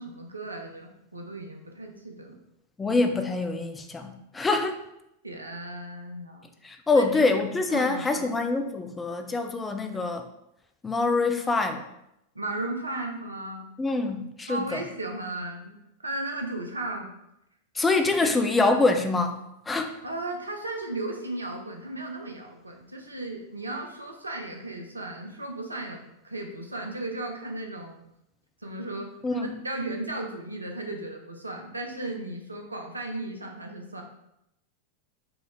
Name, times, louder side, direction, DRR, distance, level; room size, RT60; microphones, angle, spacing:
voice 1, 0.0-2.4 5.2-6.5 6.9-7.3 7.7-8.3 12.3-13.6 14.5-17.1 18.2-18.4 20.0-28.0 28.6-34.0, right 2 dB, 80° right, 3 dB, 0.6 m, -35 dB
voice 2, 2.8-4.8 6.6-10.2 10.8-11.8 13.8-14.8 17.8-19.4 19.7-19.9 29.2-29.5, left 3 dB, 15° left, 6 dB, 0.4 m, -25 dB
4.6 x 2.6 x 3.4 m, 0.82 s
figure-of-eight pair, 90°, 0 cm